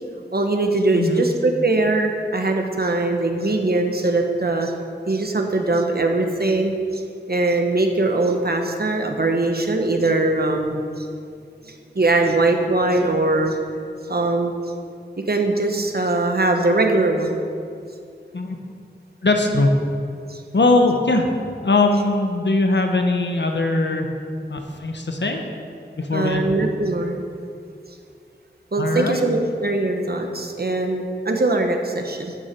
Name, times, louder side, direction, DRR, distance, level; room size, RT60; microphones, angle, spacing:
voice 1, 0.3-4.7 5.1-7.0 7.3-11.1 11.7-13.6 14.1-14.5 15.3-17.4 20.3-20.4 26.1-27.2 28.7-32.4, right 2 dB, 60° right, 4 dB, 1.1 m, -21 dB
voice 2, 0.9-1.2 18.3-18.6 19.2-19.7 20.5-21.3 21.6-24.1 24.5-25.4 26.0-26.5 28.8-29.2, left 2 dB, 75° left, 3 dB, 1.1 m, -20 dB
12.5 x 6.4 x 4.6 m, 2.4 s
wide cardioid pair, 60°, 18 cm